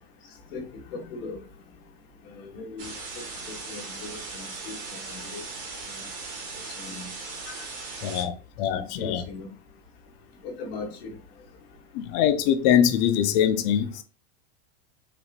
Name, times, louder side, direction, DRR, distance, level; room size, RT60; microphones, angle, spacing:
voice 1, 0.9-1.4 2.3-5.4 6.8-7.1 7.5-7.6 8.7-9.5 10.4-11.2, left 3 dB, 70° left, 1.7 m, -39 dB
sound 1, 2.8-8.2, right 3 dB, 45° right, 2.2 m, -38 dB
voice 2, 8.0-9.2 11.9-14.0, left 9 dB, 45° left, 0.6 m, -23 dB
5.0 x 3.0 x 2.4 m
supercardioid pair, 150°, 32 cm